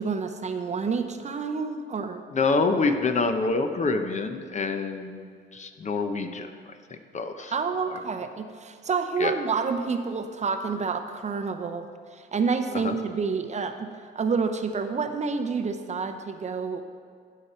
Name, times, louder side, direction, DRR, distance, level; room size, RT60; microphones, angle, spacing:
voice 1, 0.0-2.2 7.5-16.8, right 5 dB, 35° right, 7 dB, 0.6 m, -29 dB
voice 2, 2.3-5.2 5.5-6.5 7.1-7.5 9.2-9.3 12.8-12.9, left 3 dB, 35° left, 7 dB, 0.7 m, -26 dB
12.0 x 5.1 x 4.3 m, 2.2 s
cardioid pair, 90°, 20 cm